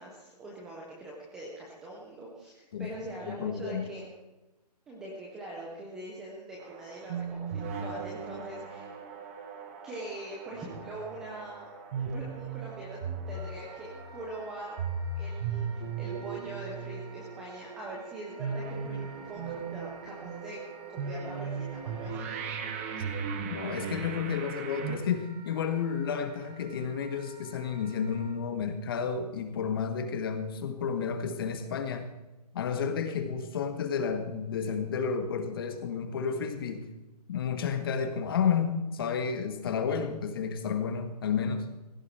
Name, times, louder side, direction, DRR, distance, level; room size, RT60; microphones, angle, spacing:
voice 1, 0.0-4.1 4.9-9.0 9.8-11.7 12.0-13.0 13.3-14.8 15.2-22.2, right 1 dB, 5° right, -3 dB, 0.4 m, -43 dB
voice 2, 3.3-3.9 23.4-32.1 32.5-36.9 37.3-41.7, left 6 dB, 35° left, 7 dB, 1.6 m, -31 dB
sound 1, 6.6-25.0, right 5 dB, 20° right, 1.0 m, -37 dB
Wind instrument woodwind instrument, 13.3-28.4, right 3 dB, 40° right, 2.9 m, -53 dB
16.0 x 13.5 x 4.5 m, 1.1 s
hypercardioid pair, 165°, 21 cm